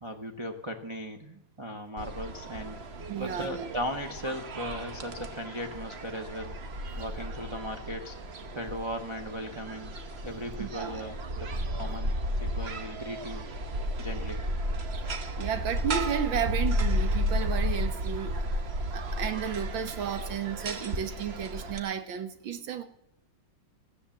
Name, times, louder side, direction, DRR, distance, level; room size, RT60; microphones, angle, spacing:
voice 1, 0.0-2.8 3.2-6.5 7.0-8.2 8.5-9.9 10.2-12.1 12.4-13.5 14.0-14.4, equal, 25° right, 2 dB, 0.7 m, -37 dB
sound 1, 2.0-21.8, equal, 45° right, 1.0 m, -33 dB
voice 2, 3.1-3.7 6.9-7.0 10.6-11.0 15.4-18.5 18.9-22.8, right 8 dB, 85° right, 9 dB, 1.9 m, -33 dB
15.0 x 10.0 x 7.1 m, 0.80 s
omnidirectional pair, 2.1 m